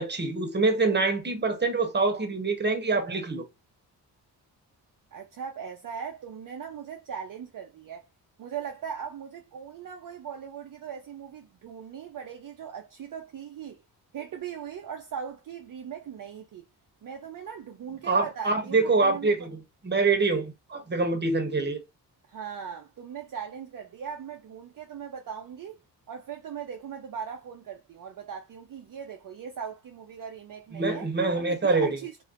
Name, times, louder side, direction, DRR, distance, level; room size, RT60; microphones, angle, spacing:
voice 1, 0.0-3.4 18.1-21.8 30.7-32.0, right 3 dB, 25° right, 1.0 m, -25 dB
voice 2, 5.1-8.1 8.4-13.8 14.1-16.6 17.0-19.5 22.3-31.1 31.3-32.2, right 7 dB, 45° right, 0.6 m, -39 dB
2.7 x 2.5 x 2.5 m
supercardioid pair, 45°, 44 cm